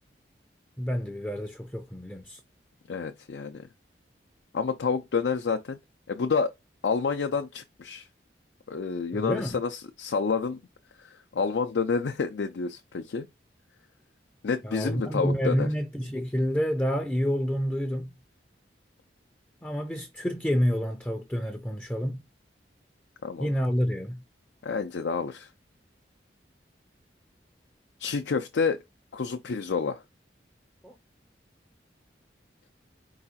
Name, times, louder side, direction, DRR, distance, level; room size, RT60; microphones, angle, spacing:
voice 1, 0.8-2.4 9.1-9.6 14.6-18.1 19.6-22.2 23.4-24.2 30.8-30.9, equal, 10° left, 0.4 m, -28 dB
voice 2, 2.9-3.7 4.5-5.8 6.1-6.5 6.8-8.1 8.7-10.6 11.1-13.3 14.4-15.7 23.2-23.5 24.6-25.5 28.0-28.8 29.1-30.0, left 5 dB, 75° left, 0.5 m, -29 dB
4.7 x 2.3 x 4.1 m
head